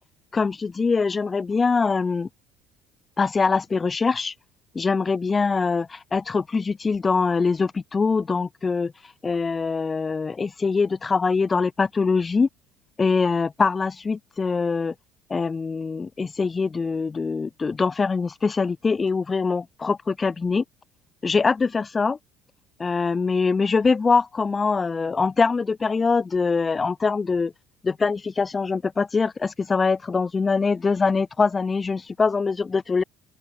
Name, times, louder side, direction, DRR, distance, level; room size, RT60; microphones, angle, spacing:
voice 1, 0.3-2.3 3.2-4.3 4.7-8.9 9.2-12.5 13.0-14.9 15.3-20.6 21.2-22.2 22.8-27.5 27.8-33.0, left 4 dB, 20° left, 3.9 m, -23 dB
open air
cardioid pair, 135°, 0 cm